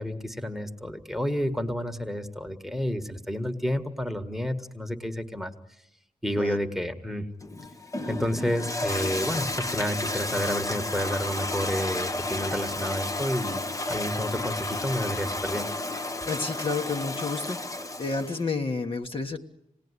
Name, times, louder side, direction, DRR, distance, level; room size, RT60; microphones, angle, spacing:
voice 1, 0.0-5.5 6.2-7.3 8.1-13.6 13.9-15.7, equal, ahead, 8 dB, 1.5 m, -30 dB
Toilet flush, 7.4-18.5, left 2 dB, 25° left, 0.9 m, -32 dB
voice 2, 16.2-17.6 18.0-19.4, left 4 dB, 45° left, 3 dB, 1.5 m, -30 dB
26.5 x 19.0 x 9.7 m, 0.82 s
wide cardioid pair, 115°, 13 cm